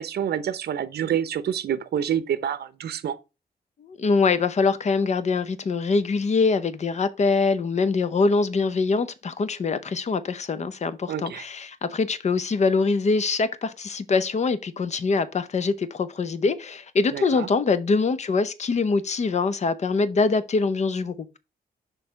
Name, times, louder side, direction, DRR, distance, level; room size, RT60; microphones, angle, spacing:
voice 1, 0.0-3.2 11.1-11.4 17.1-17.5, right 9 dB, 70° right, 0.7 m, -27 dB
voice 2, 3.8-21.4, left 4 dB, 40° left, 0.7 m, -24 dB
6.5 x 3.3 x 5.6 m
wide cardioid pair, 135°, 17 cm